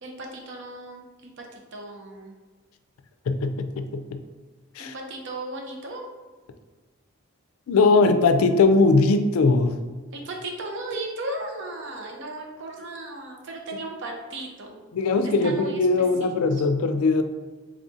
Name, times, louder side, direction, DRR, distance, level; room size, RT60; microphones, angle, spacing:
voice 1, 0.0-2.3 4.8-6.1 10.1-14.7 15.2-15.9 16.5-16.6, right 2 dB, 55° right, 1 dB, 0.6 m, -36 dB
voice 2, 3.3-4.2 4.8-4.9 7.7-9.8 14.9-17.2, left 3 dB, 85° left, 9 dB, 0.4 m, -20 dB
3.5 x 2.6 x 3.6 m, 1.3 s
head